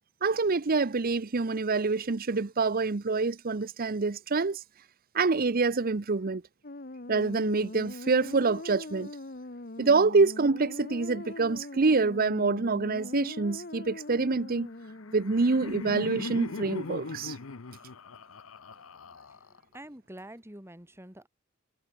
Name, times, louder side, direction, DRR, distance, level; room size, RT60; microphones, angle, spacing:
voice 1, 0.2-4.6 5.1-6.4 7.1-9.1 9.8-14.7 15.1-17.4, right 4 dB, 45° right, 0.7 m, -26 dB
sound 1, 6.6-15.6, left 2 dB, 45° left, 1.5 m, -42 dB
Laughter, 14.7-19.7, left 3 dB, 85° left, 0.9 m, -40 dB
voice 2, 19.3-21.3, right 1 dB, 10° right, 4.1 m, -47 dB
head